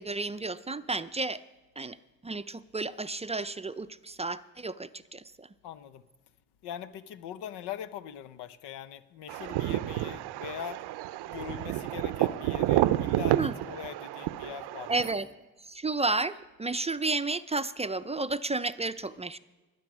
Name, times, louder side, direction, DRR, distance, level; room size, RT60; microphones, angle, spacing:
voice 1, 0.0-1.4 1.8-2.0 2.2-5.5 13.3-13.5 14.9-15.3 15.7-19.4, right 3 dB, 15° right, 0.4 m, -32 dB
voice 2, 5.6-6.0 6.6-10.8 11.2-15.1, left 10 dB, 85° left, 0.8 m, -41 dB
sound 1, 9.3-15.1, right 15 dB, 85° right, 0.6 m, -30 dB
20.5 x 7.8 x 6.1 m
cardioid pair, 70°, 39 cm